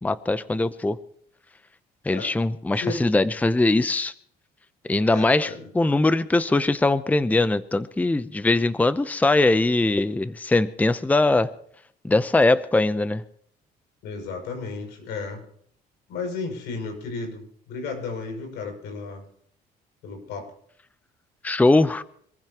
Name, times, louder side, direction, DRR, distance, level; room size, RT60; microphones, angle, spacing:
voice 1, 0.0-1.0 2.1-4.1 4.9-11.5 12.0-13.2 21.4-22.0, left 2 dB, 10° left, 14 dB, 0.7 m, -21 dB
voice 2, 5.1-5.7 14.0-15.4 16.1-19.2 20.0-20.5, left 4 dB, 85° left, 3 dB, 6.2 m, -33 dB
26.0 x 15.0 x 3.0 m, 0.63 s
cardioid pair, 110°, 17 cm